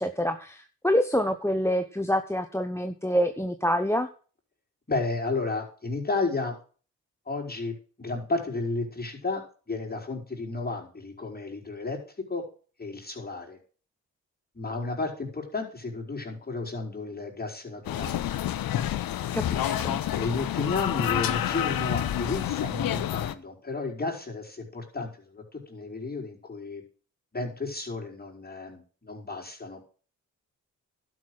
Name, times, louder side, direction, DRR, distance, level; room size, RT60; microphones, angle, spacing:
voice 1, 0.0-4.1 19.3-20.0, equal, 5° left, 9 dB, 1.0 m, -26 dB
voice 2, 4.9-6.6 7.3-12.0 12.3-12.4 12.8-13.6 14.5-18.3 20.1-26.8 27.3-29.8, left 3 dB, 25° left, 1 dB, 4.6 m, -32 dB
sound 1, 17.8-23.3, left 11 dB, 70° left, 0.8 m, -28 dB
11.5 x 6.3 x 7.9 m, 0.40 s
supercardioid pair, 45°, 36 cm